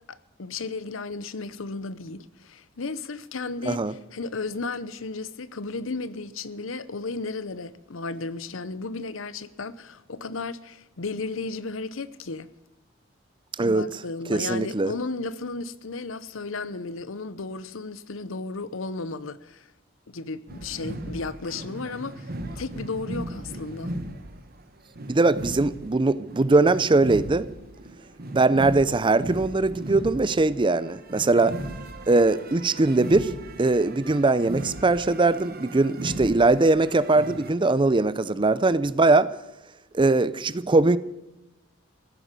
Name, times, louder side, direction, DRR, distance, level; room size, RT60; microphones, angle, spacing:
voice 1, 0.1-12.5 13.6-19.7 20.1-23.9, left 3 dB, 80° left, 0.8 m, -34 dB
voice 2, 3.6-3.9 13.6-13.9 14.3-14.9 25.1-27.5 28.3-31.6 32.1-33.3 33.6-39.3 39.9-41.0, right 3 dB, 25° right, 0.5 m, -21 dB
sound 1, 20.5-37.5, right 1 dB, 50° right, 1.5 m, -37 dB
15.5 x 9.0 x 8.2 m
head